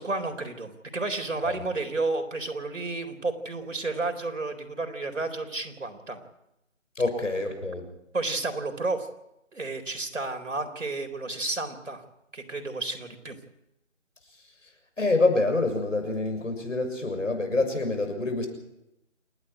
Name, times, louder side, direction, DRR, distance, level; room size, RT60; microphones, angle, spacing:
voice 1, 0.0-6.2 8.1-9.1 9.5-12.0 12.3-13.4, right 3 dB, 75° right, 6 dB, 4.1 m, -31 dB
voice 2, 7.0-7.9 15.0-18.5, left 2 dB, 75° left, 5 dB, 7.0 m, -26 dB
28.0 x 10.5 x 9.8 m, 0.89 s
figure-of-eight pair, 180°, 38 cm